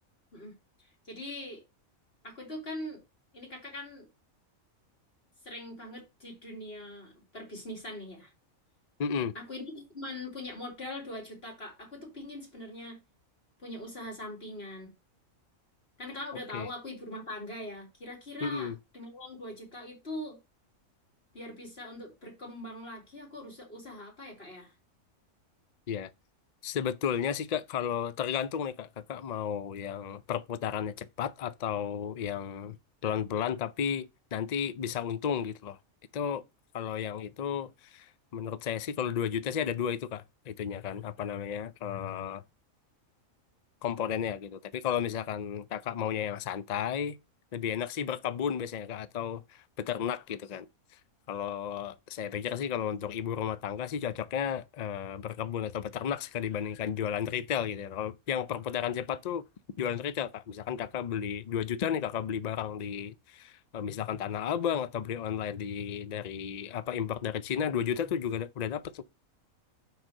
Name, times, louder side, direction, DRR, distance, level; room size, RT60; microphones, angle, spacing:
voice 1, 1.1-1.6 2.2-3.0 3.3-4.1 5.4-8.3 9.4-13.0 13.6-14.9 16.0-20.4 21.3-24.7, left 1 dB, 45° left, 3.7 m, -42 dB
voice 2, 9.0-9.3 16.5-16.7 18.4-18.8 25.9-26.1 26.6-32.8 33.0-35.8 36.1-36.4 36.7-42.4 43.8-47.2 47.5-50.7 51.3-59.4 59.8-69.0, left 8 dB, 85° left, 0.3 m, -33 dB
6.2 x 5.0 x 6.5 m
omnidirectional pair, 1.5 m